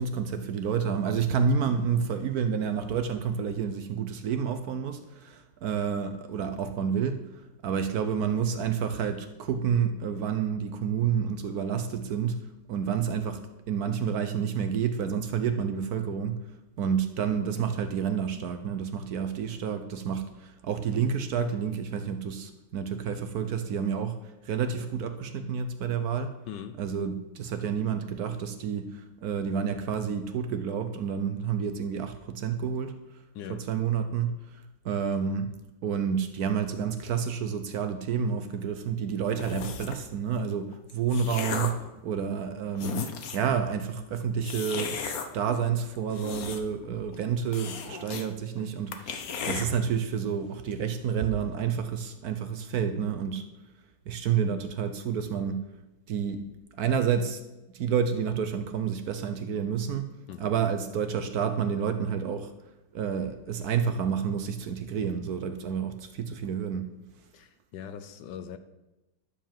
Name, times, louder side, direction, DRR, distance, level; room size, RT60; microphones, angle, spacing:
voice 1, 0.0-7.2 7.6-12.4 12.7-16.4 16.8-26.3 26.8-33.0 33.5-35.5 35.8-41.7 42.0-43.0 43.3-53.4 54.1-55.6 56.1-56.5 56.8-57.4 57.7-60.1 60.4-62.5 62.9-66.9, right 7 dB, 65° right, 1.0 m, -29 dB
voice 2, 26.5-26.8 33.3-33.7 60.3-60.5 67.3-68.6, left 8 dB, 75° left, 1.2 m, -41 dB
sound 1, 39.4-40.1 40.7-41.9 42.4-42.5 42.7-43.5 44.4-45.3 45.9-46.8 47.1-47.2 47.5-48.3 48.6-48.7 48.9-49.7, left 6 dB, 55° left, 1.2 m, -35 dB
11.5 x 4.8 x 7.4 m
omnidirectional pair, 2.1 m